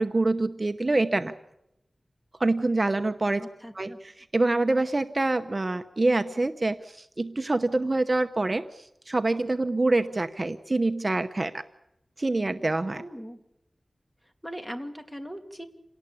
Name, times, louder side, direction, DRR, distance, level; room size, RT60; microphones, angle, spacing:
voice 1, 0.0-1.3 2.4-3.4 3.7-11.6 12.2-13.0, right 2 dB, 35° right, 9 dB, 0.9 m, -26 dB
voice 2, 3.4-4.0 12.9-13.4 14.4-15.7, equal, 5° left, 6 dB, 2.6 m, -39 dB
28.0 x 18.5 x 8.6 m, 0.86 s
wide cardioid pair, 85°, 0 cm